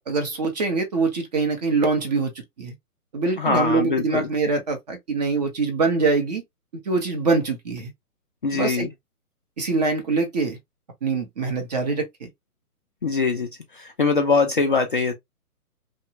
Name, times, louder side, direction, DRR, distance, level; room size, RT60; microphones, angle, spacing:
voice 1, 0.0-2.3 2.6-2.7 3.1-6.4 6.9-7.9 8.5-8.9 9.6-10.6 11.0-12.3, right 4 dB, 30° right, 0.7 m, -24 dB
voice 2, 3.4-4.3 8.4-8.9 13.0-15.1, left 4 dB, 35° left, 0.4 m, -22 dB
2.9 x 2.2 x 2.7 m
hypercardioid pair, 140°, 45 cm